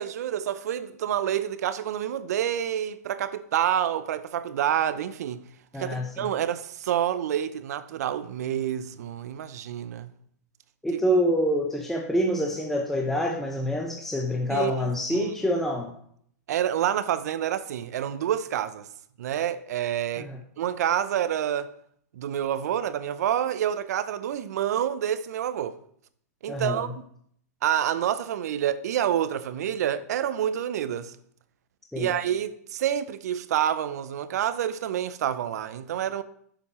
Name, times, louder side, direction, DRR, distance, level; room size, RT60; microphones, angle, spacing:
voice 1, 0.0-5.4 5.8-10.1 10.9-11.0 14.5-15.3 16.5-18.9 19.2-20.3 20.6-21.7 22.1-25.8 26.4-26.9 27.6-31.2 32.0-36.2, right 10 dB, 70° right, 0.6 m, -28 dB
voice 2, 5.7-6.3 10.8-15.9 20.2-20.4 26.5-26.9 31.9-32.1, equal, 5° left, 0.7 m, -26 dB
7.0 x 7.0 x 4.3 m
hypercardioid pair, 125°, 9 cm